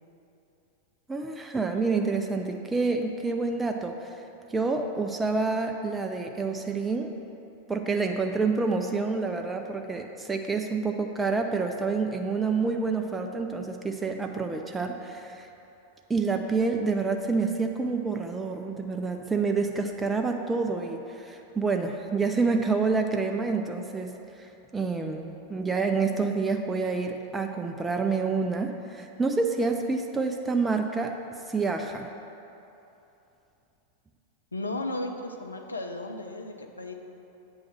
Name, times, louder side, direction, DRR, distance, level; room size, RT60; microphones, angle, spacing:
voice 1, 1.1-4.2 4.5-7.1 7.7-15.5 16.1-24.1 24.4-31.2 31.5-32.1, right 4 dB, 10° right, 4 dB, 0.3 m, -28 dB
voice 2, 34.5-36.9, left 2 dB, 80° left, 4 dB, 0.5 m, -34 dB
8.2 x 3.1 x 6.0 m, 2.9 s
figure-of-eight pair, 90°, 0 cm